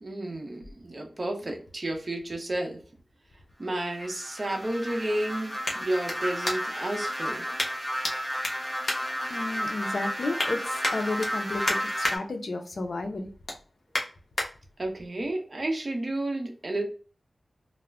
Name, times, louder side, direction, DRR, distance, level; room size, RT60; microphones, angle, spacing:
voice 1, 0.0-2.8 3.6-7.4 14.8-16.9, right 1 dB, 45° right, 2 dB, 0.6 m, -31 dB
sound 1, 2.9-6.9 7.6-8.1 8.4-9.7 10.1-10.5 10.8-12.2 12.6-12.8 13.2-14.5 15.0-15.1, left 1 dB, 55° left, 0.8 m, -33 dB
sound 2, 3.8-12.2, equal, ahead, 0.7 m, -33 dB
voice 2, 9.3-13.3, left 2 dB, 80° left, 5 dB, 0.5 m, -32 dB
2.4 x 2.0 x 3.2 m, 0.39 s
wide cardioid pair, 75°, 0 cm